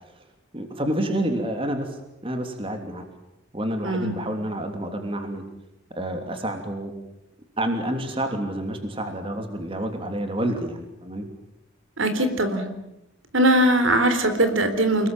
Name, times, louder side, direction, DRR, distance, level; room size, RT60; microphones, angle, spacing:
voice 1, 0.5-2.0 2.2-3.1 3.5-5.4 5.9-6.9 7.6-11.3, right 1 dB, 25° right, 5 dB, 3.0 m, -28 dB
voice 2, 3.8-4.2 12.0-12.7 13.3-15.1, right 1 dB, 65° right, 9 dB, 3.8 m, -20 dB
30.0 x 20.0 x 9.1 m, 0.87 s
head